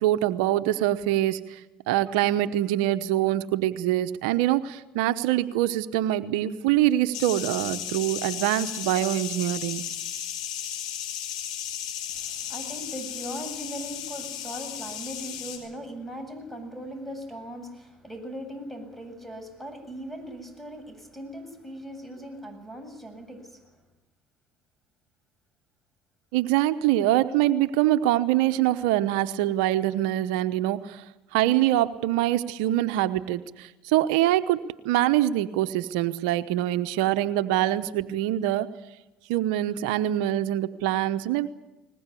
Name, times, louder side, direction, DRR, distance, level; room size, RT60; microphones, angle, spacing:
voice 1, 0.0-1.6 1.9-9.8 26.3-31.0 31.3-34.6 34.8-38.7 39.3-41.5, right 14 dB, 80° right, 10 dB, 0.9 m, -24 dB
sound 1, 7.1-15.6, left 9 dB, 85° left, 5.1 m, -35 dB
voice 2, 12.1-23.7, equal, 5° left, 8 dB, 8.0 m, -39 dB
21.5 x 20.0 x 8.4 m, 1.0 s
hypercardioid pair, 80°, 4 cm